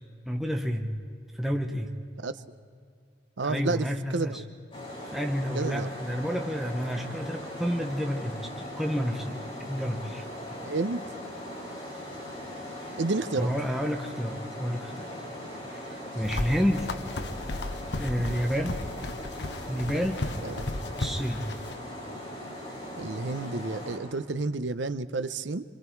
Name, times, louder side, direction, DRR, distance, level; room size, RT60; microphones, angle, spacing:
voice 1, 0.3-0.9 1.3-1.9 3.4-4.4 5.1-10.2 13.4-15.1 15.7-16.9 17.4-17.6 18.0-18.8 19.7-20.2 21.0-21.4, equal, ahead, 2 dB, 1.1 m, -30 dB
voice 2, 3.4-4.4 5.5-5.9 10.6-11.0 13.0-13.5 18.2-18.4 20.4-20.6 23.0-25.6, right 3 dB, 85° right, 12 dB, 0.8 m, -30 dB
sound 1, 4.7-24.0, left 1 dB, 30° left, 6.9 m, -40 dB
sound 2, 16.2-21.7, left 2 dB, 70° left, 1.0 m, -35 dB
27.0 x 24.5 x 4.7 m, 2.1 s
head